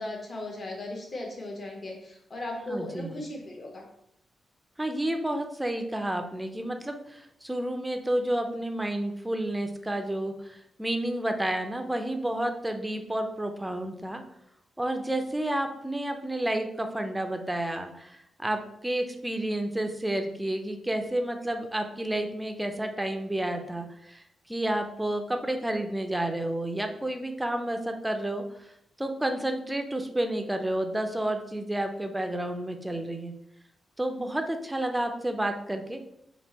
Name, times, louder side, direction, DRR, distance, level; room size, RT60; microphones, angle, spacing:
voice 1, 0.0-3.9, left 1 dB, 35° left, 0 dB, 0.9 m, -37 dB
voice 2, 2.7-3.2 4.8-14.2 14.8-28.4 29.0-33.3 34.0-36.0, right 1 dB, 10° right, 6 dB, 0.4 m, -30 dB
3.5 x 2.4 x 4.0 m, 0.77 s
wide cardioid pair, 125°, 0 cm